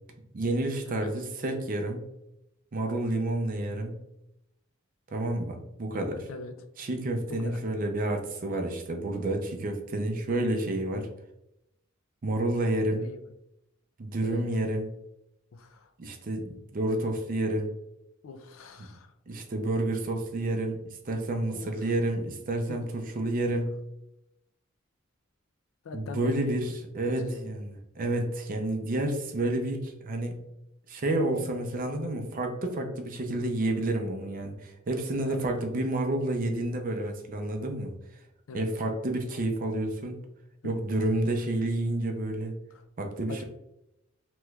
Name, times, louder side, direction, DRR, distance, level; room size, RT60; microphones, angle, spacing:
voice 1, 0.3-2.1 2.7-4.0 5.1-6.3 6.8-11.1 12.2-13.0 14.0-14.9 16.0-17.7 18.8-18.9 19.3-23.8 25.9-26.7 27.0-30.4 30.9-38.0 38.5-40.2 40.6-42.5 43.0-43.4, right 1 dB, 40° right, 4 dB, 0.5 m, -30 dB
voice 2, 15.5-15.9 18.2-19.1 21.5-21.9 22.7-22.9 25.8-26.5 27.1-27.5 35.0-35.5 38.5-38.7 40.6-40.7 42.7-42.8 43.3-43.4, left 4 dB, 70° left, 7 dB, 0.4 m, -41 dB
3.2 x 3.0 x 2.3 m, 0.86 s
head